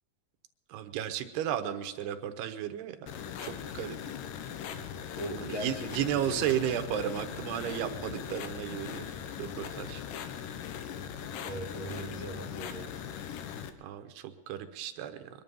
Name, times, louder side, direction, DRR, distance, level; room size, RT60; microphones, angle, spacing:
voice 1, 0.7-3.1 3.4-4.0 5.4-10.0 13.8-15.3, right 10 dB, 85° right, 8 dB, 2.9 m, -34 dB
sound 1, 3.1-13.7, left 8 dB, 75° left, 2.1 m, -40 dB
voice 2, 5.2-6.5 11.4-12.9, equal, 55° left, 1 dB, 2.2 m, -39 dB
23.0 x 11.0 x 5.4 m, 1.2 s
omnidirectional pair, 4.6 m